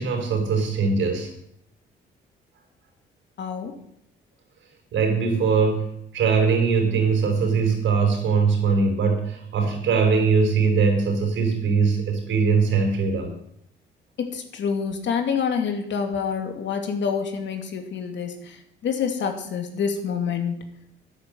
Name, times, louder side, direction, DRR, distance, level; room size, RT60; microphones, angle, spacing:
voice 1, 0.0-1.3 4.9-13.3, right 5 dB, 75° right, 3 dB, 4.7 m, -21 dB
voice 2, 3.4-3.7 14.2-20.6, left 6 dB, 65° left, 5 dB, 2.5 m, -27 dB
10.5 x 10.0 x 7.8 m, 0.72 s
cardioid pair, 90°, 20 cm